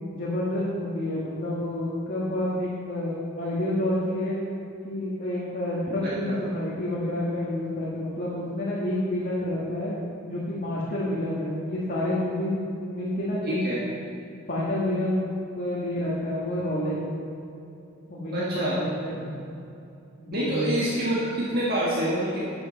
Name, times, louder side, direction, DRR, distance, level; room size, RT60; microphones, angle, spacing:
voice 1, 0.1-4.4 4.8-9.9 10.2-13.6 14.5-15.2 15.6-17.0 18.1-19.3 20.2-20.7, left 1 dB, 45° left, -7 dB, 1.6 m, -29 dB
voice 2, 6.0-6.4 13.5-13.8 18.3-18.8 20.3-22.5, right 1 dB, 50° right, -8 dB, 1.6 m, -27 dB
11.5 x 7.4 x 4.1 m, 2.7 s
head